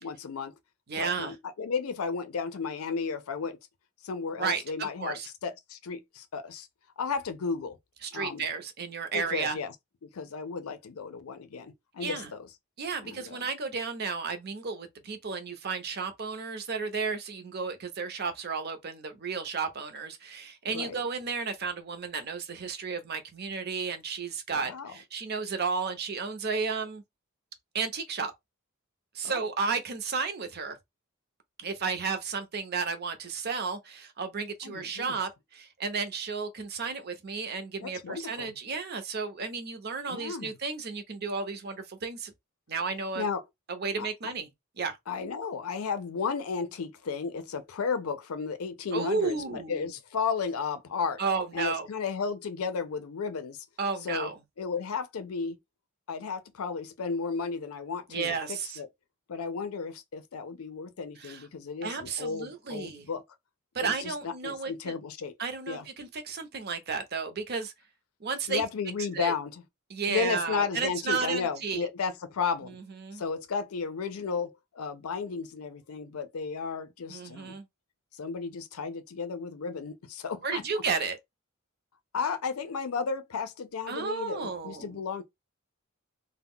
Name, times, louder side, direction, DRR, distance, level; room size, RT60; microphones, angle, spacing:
voice 1, 0.0-0.5 1.0-3.6 4.0-6.7 7.0-7.8 8.1-8.5 9.1-9.7 10.0-12.5 13.0-13.5 20.7-21.0 24.5-24.9 29.2-29.4 34.6-35.2 37.8-38.6 40.1-40.6 43.2-43.4 44.0-44.1 45.1-51.2 51.5-53.6 54.0-54.3 54.6-55.6 56.1-58.9 59.3-63.2 63.8-65.3 65.7-65.9 68.5-69.6 70.1-72.8 73.1-77.6 78.1-80.6 82.1-85.2, left 5 dB, 85° left, 0.5 m, -34 dB
voice 2, 0.9-1.3 4.4-5.3 8.0-9.6 12.0-12.3 12.8-27.0 27.7-28.3 29.1-30.8 31.6-42.3 42.7-43.2 43.7-44.5 44.8-45.0 48.9-49.9 51.2-51.9 53.8-54.4 58.1-58.8 61.2-61.4 61.8-63.1 63.7-64.9 65.4-67.7 68.2-68.6 69.1-69.3 69.9-71.9 73.0-73.2 77.1-77.6 80.4-81.2 83.9-85.0, right 5 dB, 50° right, 0.6 m, -33 dB
2.2 x 2.1 x 3.5 m
head